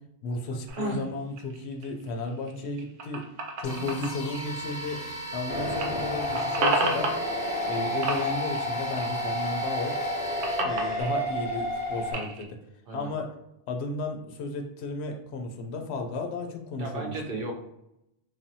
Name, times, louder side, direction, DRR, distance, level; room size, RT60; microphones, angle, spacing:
voice 1, 0.2-3.3 3.6-5.0 5.3-7.1 7.6-10.0 10.6-12.6 12.9-13.3 13.7-17.1, left 3 dB, 80° left, 3 dB, 0.8 m, -33 dB
sound 1, 0.7-5.4 5.7-7.8 8.0-9.5 9.8-12.5, right 2 dB, 90° right, 0.9 m, -33 dB
sound 2, 3.6-11.0, right 1 dB, 50° left, 0.6 m, -37 dB
sound 3, 5.5-12.1, equal, 10° left, 0.6 m, -31 dB
voice 2, 16.8-17.5, right 3 dB, 60° right, 1 dB, 0.7 m, -33 dB
3.2 x 2.1 x 2.7 m, 0.83 s
omnidirectional pair, 1.1 m